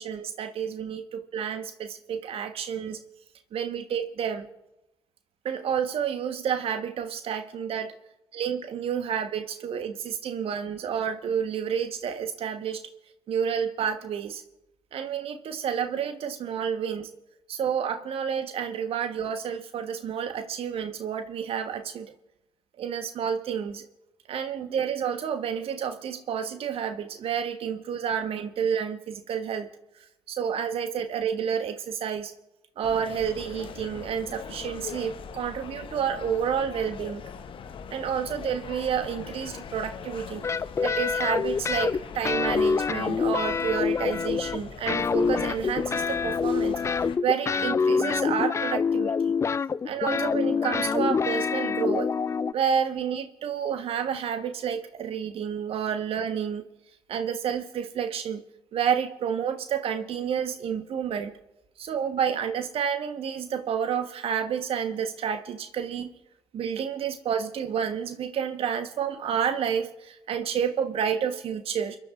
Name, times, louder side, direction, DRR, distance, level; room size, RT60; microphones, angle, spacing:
voice 1, 0.0-3.0 3.5-4.5 5.4-7.9 8.3-12.8 13.3-14.4 14.9-17.1 17.5-22.1 22.8-23.8 24.3-29.7 30.3-32.3 32.8-37.2 37.9-40.5 40.8-49.4 49.8-52.1 52.5-56.6 57.1-58.4 58.7-61.3 61.8-66.1 66.5-72.0, right 8 dB, 50° right, 9 dB, 1.4 m, -30 dB
sound 1, 32.8-47.2, left 6 dB, 45° left, 1.1 m, -41 dB
sound 2, 40.4-42.0 42.2-44.6 44.9-52.5, left 5 dB, 25° left, 0.4 m, -26 dB
29.5 x 11.0 x 2.6 m, 0.95 s
figure-of-eight pair, 45°, 13 cm